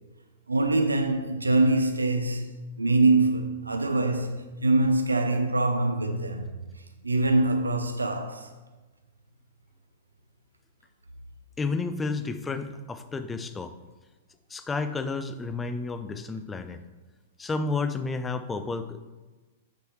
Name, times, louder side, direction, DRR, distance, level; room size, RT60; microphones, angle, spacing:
voice 1, 0.5-2.5 2.8-6.6 7.0-8.5, right 2 dB, 85° right, 0.6 m, -24 dB
voice 2, 11.6-13.7 14.5-16.8 17.4-19.0, left 3 dB, 15° left, 0.4 m, -31 dB
8.2 x 4.7 x 3.2 m
figure-of-eight pair, 105°, 0 cm